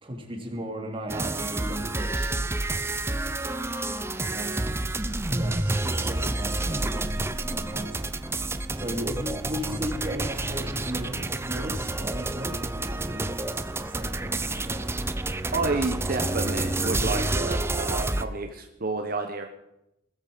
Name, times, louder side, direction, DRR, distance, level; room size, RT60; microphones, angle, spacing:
voice 1, 0.0-2.3 3.2-3.3 4.2-4.8 5.3-8.0 8.7-14.9, equal, 30° right, 2 dB, 3.0 m, -36 dB
sound 1, 1.1-18.2, right 2 dB, 15° right, 0.6 m, -29 dB
voice 2, 15.5-19.5, right 3 dB, 50° right, 5 dB, 1.2 m, -30 dB
20.0 x 13.0 x 5.2 m, 0.85 s
head